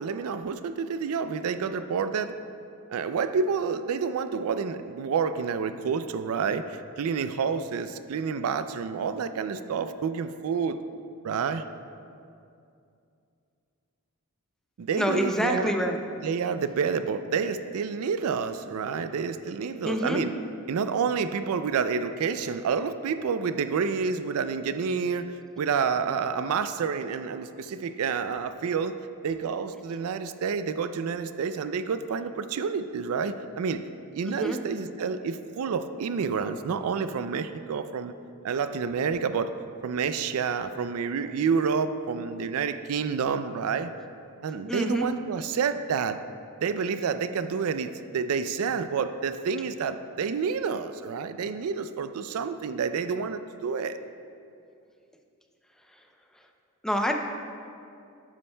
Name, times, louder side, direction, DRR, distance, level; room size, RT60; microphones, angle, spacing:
voice 1, 0.0-2.3 2.9-10.8 11.2-11.7 14.8-15.7 16.2-20.3 20.7-29.0 29.2-33.8 34.1-38.1 38.4-39.5 39.8-43.9 44.4-46.2 46.6-54.0, right 6 dB, 70° right, 11 dB, 0.4 m, -29 dB
voice 2, 14.9-16.0 19.8-20.2 34.3-34.6 44.7-45.1 55.9-56.0 56.8-57.1, equal, 5° left, 3 dB, 0.5 m, -27 dB
12.5 x 9.7 x 2.2 m, 2.5 s
head